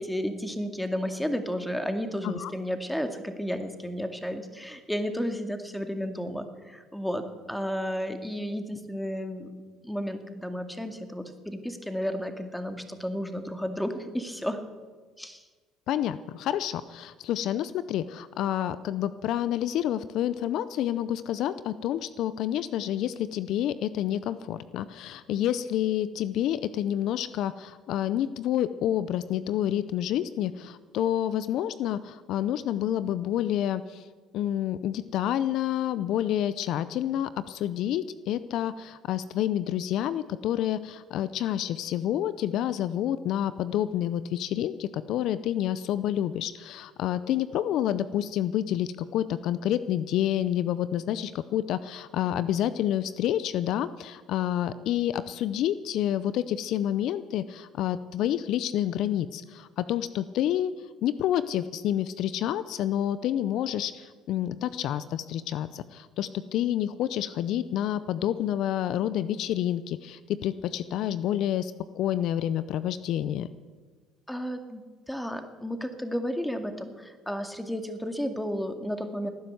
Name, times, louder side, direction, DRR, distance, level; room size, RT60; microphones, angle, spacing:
voice 1, 0.0-9.5 9.8-14.6 15.2-15.4 74.3-74.8 75.1-79.3, equal, 5° left, 7 dB, 2.2 m, -32 dB
voice 2, 15.9-34.1 34.3-60.7 61.0-73.5, left 11 dB, 65° left, 15 dB, 0.6 m, -28 dB
17.5 x 10.5 x 7.9 m, 1.4 s
supercardioid pair, 75°, 0 cm